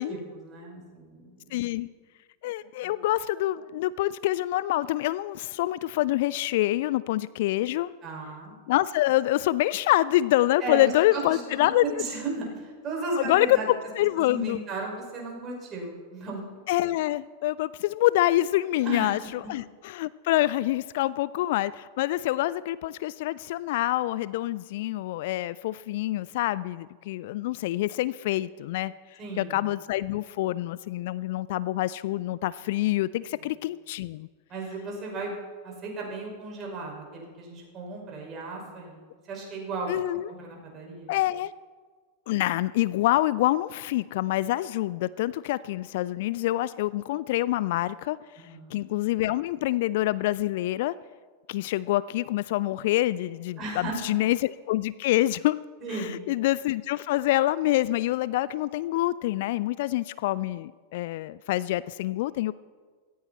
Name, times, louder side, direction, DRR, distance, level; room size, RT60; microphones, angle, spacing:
voice 1, 0.0-1.7 2.8-2.9 8.0-8.5 10.6-13.7 14.2-16.4 18.8-19.5 29.2-29.6 33.3-33.4 34.5-39.0 39.3-39.9 40.3-41.1 48.4-48.8 53.6-54.0 55.8-56.2, right 3 dB, 30° right, -1 dB, 5.6 m, -35 dB
voice 2, 1.5-1.9 2.4-7.9 8.7-12.0 13.2-14.6 16.7-34.3 39.9-40.3 41.1-41.5 42.3-48.2 48.7-50.9 51.5-55.6 55.9-62.5, left 16 dB, 50° left, 19 dB, 0.3 m, -26 dB
17.0 x 15.0 x 4.3 m, 1.5 s
figure-of-eight pair, 90°, 0 cm